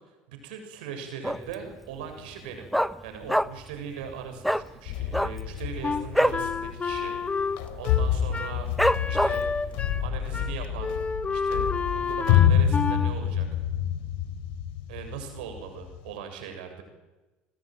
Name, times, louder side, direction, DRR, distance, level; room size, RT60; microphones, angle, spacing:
voice 1, 0.3-2.7 3.0-8.7 9.1-9.7 10.0-10.9 11.3-13.5 14.9-16.8, right 7 dB, 85° right, 5 dB, 7.4 m, -39 dB
Dog, 1.2-1.7 2.0-2.1 2.3-3.8 4.0-4.1 4.4-4.7 5.0-6.5 6.8-7.0 7.2-7.7 8.1-8.2 8.8-9.6 10.1-10.2, equal, ahead, 1.0 m, -25 dB
sound 1, 4.9-16.1, left 10 dB, 80° left, 3.5 m, -27 dB
Wind instrument woodwind instrument, 5.8-10.1 10.3-10.5 10.8-13.1, left 4 dB, 25° left, 1.9 m, -30 dB
29.5 x 20.5 x 9.3 m, 1.1 s
supercardioid pair, 85°, 5 cm